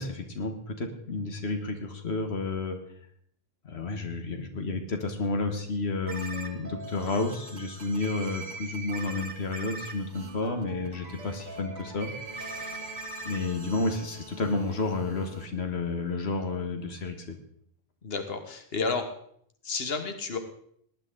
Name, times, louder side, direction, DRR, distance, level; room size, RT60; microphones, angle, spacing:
voice 1, 0.0-2.8 3.6-12.1 13.2-17.4, left 3 dB, 90° left, 6 dB, 1.6 m, -31 dB
sound 1, 6.1-15.5, right 2 dB, 45° right, 1.6 m, -41 dB
voice 2, 18.0-19.1 19.6-20.4, left 4 dB, 70° left, 6 dB, 1.6 m, -31 dB
18.5 x 10.5 x 3.8 m, 0.66 s
omnidirectional pair, 1.1 m